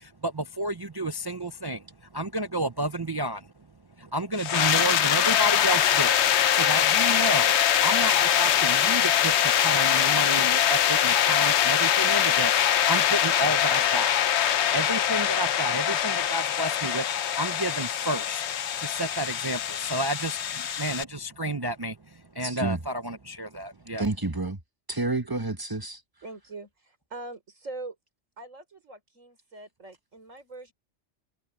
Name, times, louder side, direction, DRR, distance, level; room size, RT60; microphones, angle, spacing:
voice 1, 0.0-1.9 2.1-3.5 4.0-14.2 14.7-24.0, right 1 dB, 35° right, 0.4 m, -31 dB
sound 1, 4.4-21.0, left 10 dB, 65° left, 0.9 m, -23 dB
voice 2, 22.4-22.8 24.0-24.6 24.9-26.0, right 2 dB, 20° right, 1.3 m, -29 dB
voice 3, 26.2-28.0 28.4-30.7, right 2 dB, 85° right, 5.2 m, -42 dB
omnidirectional pair, 1.3 m